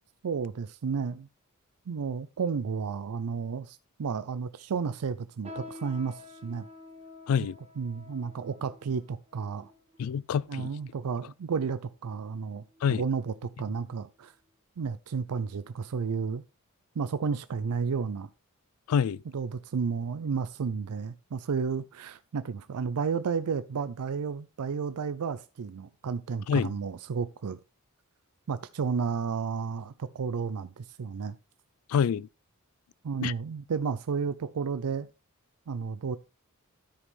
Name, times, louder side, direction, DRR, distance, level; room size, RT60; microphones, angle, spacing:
voice 1, 0.2-1.3 1.9-6.7 7.8-9.7 10.5-12.6 12.9-14.3 14.8-16.4 17.0-18.3 19.3-27.6 28.5-31.4 33.0-35.1 35.7-36.2, right 5 dB, 85° right, 0.5 m, -32 dB
sound 1, 5.4-11.1 11.8-11.9 12.6-12.9 13.3-13.5 14.2-14.3, left 3 dB, 30° right, 1.3 m, -49 dB
voice 2, 10.0-10.7 12.8-13.0 18.9-19.2 26.5-26.7 31.9-32.3 33.2-33.3, left 7 dB, 75° left, 0.3 m, -26 dB
13.0 x 5.2 x 3.2 m
head